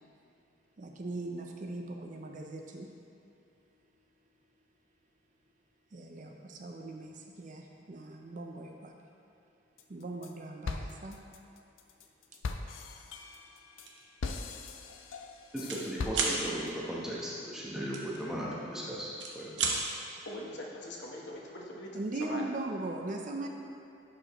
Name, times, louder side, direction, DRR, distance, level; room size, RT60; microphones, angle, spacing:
voice 1, 0.8-2.9 5.9-8.9 9.9-11.2 21.9-23.5, right 2 dB, 40° right, 2 dB, 0.5 m, -39 dB
sound 1, 9.8-10.3 10.6-16.7, left 4 dB, 80° left, 0.5 m, -40 dB
sound 2, 13.8-14.0 14.5-14.7 14.9-15.8 16.1-16.4 17.9-18.7 19.1-19.8, right 5 dB, 65° right, 0.9 m, -32 dB
voice 2, 15.5-19.8, equal, 5° right, -6 dB, 0.9 m, -37 dB
voice 3, 20.2-22.4, left 1 dB, 60° left, -2 dB, 1.0 m, -42 dB
10.5 x 5.0 x 3.0 m, 2.8 s
head